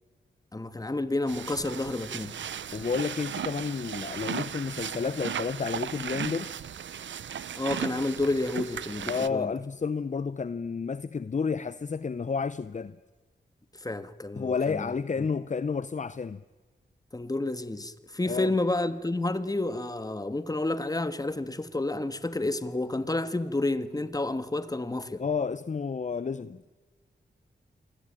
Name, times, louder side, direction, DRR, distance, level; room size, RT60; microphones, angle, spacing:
voice 1, 0.5-2.4 7.5-9.5 13.8-14.9 17.1-25.2, left 2 dB, 20° left, 1.7 m, -30 dB
sound 1, 1.3-9.3, right 8 dB, 85° right, 0.8 m, -36 dB
voice 2, 2.7-6.6 9.1-13.0 14.3-16.4 18.2-18.5 25.2-26.6, left 5 dB, 40° left, 0.8 m, -31 dB
27.0 x 21.0 x 9.0 m
wide cardioid pair, 80°, 19 cm